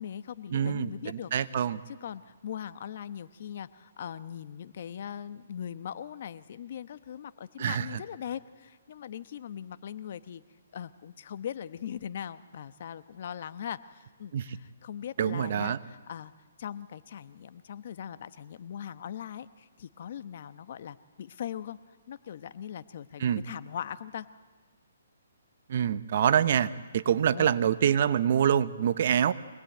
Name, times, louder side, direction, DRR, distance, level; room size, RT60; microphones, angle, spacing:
voice 1, 0.0-10.4 10.7-16.3 16.6-21.8 22.1-24.3 27.1-27.6, left 9 dB, 50° left, 13 dB, 1.0 m, -40 dB
voice 2, 0.5-1.8 7.6-8.0 14.3-14.6 15.2-15.8 23.2-23.4 25.7-29.3, right 9 dB, 50° right, 14 dB, 0.9 m, -26 dB
25.0 x 19.5 x 9.1 m, 1.4 s
hypercardioid pair, 160°, 0 cm